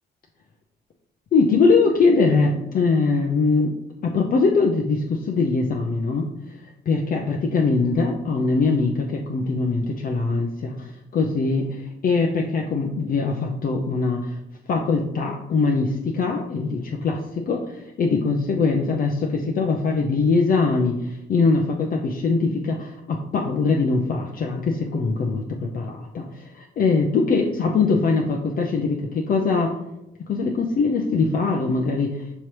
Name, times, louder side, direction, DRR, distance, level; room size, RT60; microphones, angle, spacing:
voice 1, 1.3-3.7 4.0-6.3 6.9-14.4 14.7-29.7 30.2-32.3, left 4 dB, 45° left, 0 dB, 0.5 m, -22 dB
5.5 x 3.0 x 3.2 m, 0.92 s
cardioid pair, 90°, 20 cm